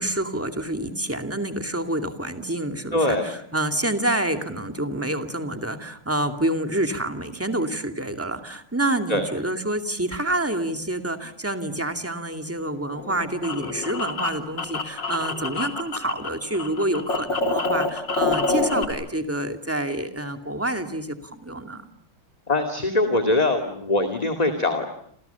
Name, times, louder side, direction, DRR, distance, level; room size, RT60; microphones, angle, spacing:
voice 1, 0.0-21.8, right 1 dB, 5° right, 6 dB, 2.3 m, -27 dB
voice 2, 2.9-3.3 9.1-9.3 22.5-24.9, left 2 dB, 20° left, 5 dB, 2.2 m, -22 dB
sound 1, 12.9-16.3 16.5-18.8, left 3 dB, 60° left, 4.0 m, -26 dB
29.5 x 28.0 x 7.0 m, 0.67 s
omnidirectional pair, 2.3 m